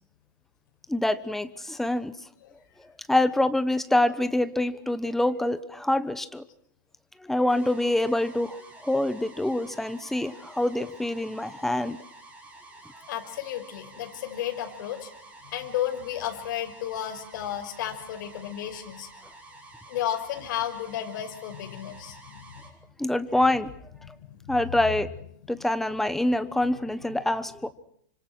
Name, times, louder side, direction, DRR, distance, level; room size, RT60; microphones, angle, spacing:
voice 1, 0.9-2.1 3.1-6.4 7.2-12.0 23.0-23.7 24.1-24.2 24.5-25.1 25.5-27.7, left 1 dB, 5° left, 12 dB, 1.0 m, -25 dB
sound 1, 7.5-22.7, right 2 dB, 10° right, 5.6 m, -49 dB
voice 2, 13.1-15.1 15.4-19.1 19.9-22.5 24.0-24.6 25.0-25.1 25.4-25.6, left 11 dB, 65° left, 4 dB, 5.8 m, -33 dB
29.0 x 26.0 x 6.2 m, 0.69 s
supercardioid pair, 160°, 11 cm